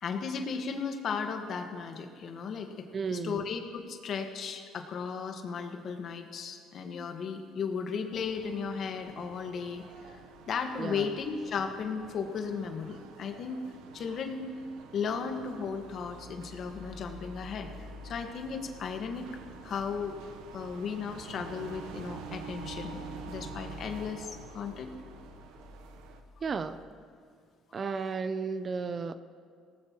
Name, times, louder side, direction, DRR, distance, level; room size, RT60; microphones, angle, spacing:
voice 1, 0.0-9.8 10.5-13.6 13.9-14.5 14.9-17.7 18.0-19.3 19.6-20.2 20.5-24.9, left 6 dB, 55° left, 5 dB, 1.5 m, -35 dB
voice 2, 2.9-3.4 10.8-11.1 26.4-26.8 27.7-29.1, right 5 dB, 40° right, 12 dB, 0.7 m, -33 dB
sound 1, 8.1-26.2, right 6 dB, 80° right, 1.0 m, -48 dB
sound 2, 15.2-26.9, left 4 dB, 15° left, 1.8 m, -51 dB
21.0 x 18.0 x 3.0 m, 2.2 s
supercardioid pair, 75°, 0 cm